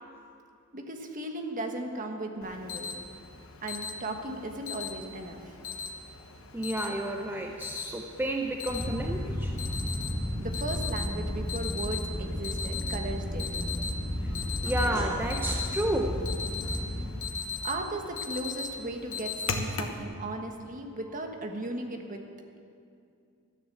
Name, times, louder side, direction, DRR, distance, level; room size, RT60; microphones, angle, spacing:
voice 1, 0.7-3.0 3.6-5.5 10.4-13.5 17.6-22.2, right 2 dB, 40° right, 3 dB, 1.4 m, -36 dB
Alarm, 2.4-20.0, left 5 dB, 65° left, 1.2 m, -39 dB
voice 2, 6.5-9.5 14.2-14.4 14.6-16.3, right 1 dB, 10° right, 2 dB, 0.6 m, -31 dB
sound 1, 8.7-17.1, left 1 dB, 20° left, 3.1 m, -33 dB
13.5 x 9.9 x 7.7 m, 2.5 s
head